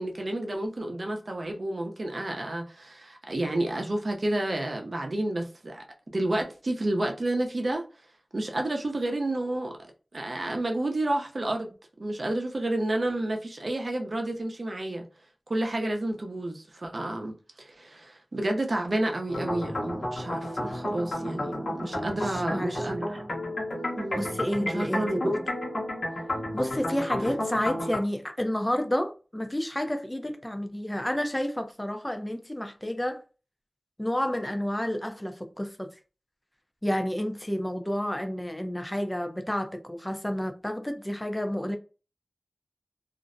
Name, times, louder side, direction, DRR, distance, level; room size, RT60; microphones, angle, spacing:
voice 1, 0.0-5.8 6.1-7.8 8.3-9.7 10.1-11.7 12.0-15.1 15.5-23.2 24.0-24.4 24.7-25.8, right 1 dB, 55° right, 0.6 m, -30 dB
sound 1, 19.3-28.0, left 1 dB, 80° left, 0.9 m, -32 dB
voice 2, 21.9-22.9 24.1-25.1 26.5-33.2 34.0-35.9 36.8-41.8, left 1 dB, 15° left, 0.5 m, -30 dB
2.5 x 2.0 x 2.5 m
cardioid pair, 45°, 0 cm